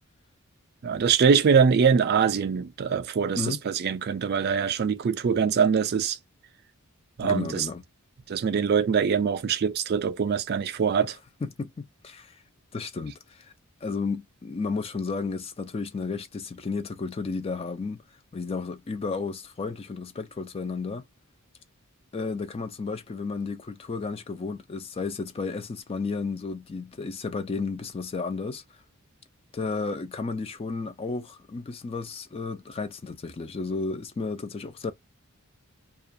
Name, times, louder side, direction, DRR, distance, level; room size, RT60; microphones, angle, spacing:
voice 1, 0.8-6.2 7.2-7.7 8.3-11.2, right 6 dB, 45° right, 0.3 m, -23 dB
voice 2, 7.2-7.8 11.4-12.4 12.7-13.5 13.8-18.0 18.3-21.0 22.1-28.6 29.5-34.9, left 4 dB, 25° left, 0.3 m, -33 dB
2.4 x 2.2 x 2.6 m
head